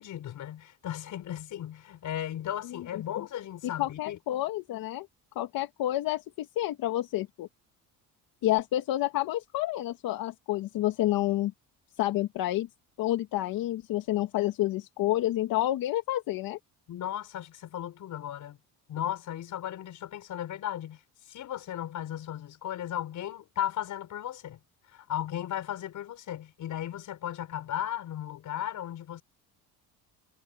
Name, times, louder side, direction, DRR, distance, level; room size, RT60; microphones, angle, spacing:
voice 1, 0.0-4.2 16.9-18.6 18.9-21.0 21.3-24.6 24.9-29.2, left 11 dB, 55° left, 5.4 m, -36 dB
voice 2, 3.8-5.1 5.4-7.5 8.4-11.5 12.0-12.7 13.0-16.6, left 15 dB, 70° left, 2.0 m, -29 dB
cardioid pair, 150°, 36 cm